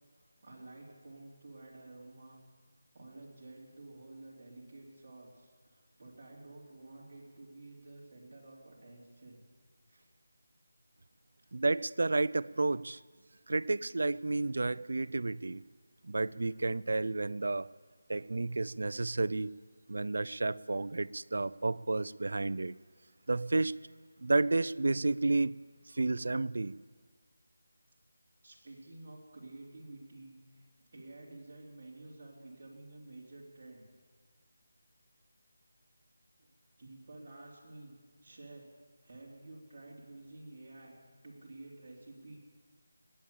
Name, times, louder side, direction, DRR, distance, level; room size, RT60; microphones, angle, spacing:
voice 1, 0.1-2.4 2.9-9.4 9.9-10.1 28.4-30.7 30.9-33.9 36.8-38.0 38.2-38.7 39.0-40.9 41.2-42.4, right 2 dB, 40° right, -4 dB, 3.7 m, -51 dB
voice 2, 11.5-13.0 13.5-15.6 16.0-17.7 18.1-19.5 19.9-22.7 23.3-23.9 24.2-25.5 25.9-26.8, right 2 dB, 65° right, 19 dB, 0.4 m, -31 dB
20.0 x 8.7 x 7.1 m, 1.6 s
figure-of-eight pair, 170°, 0 cm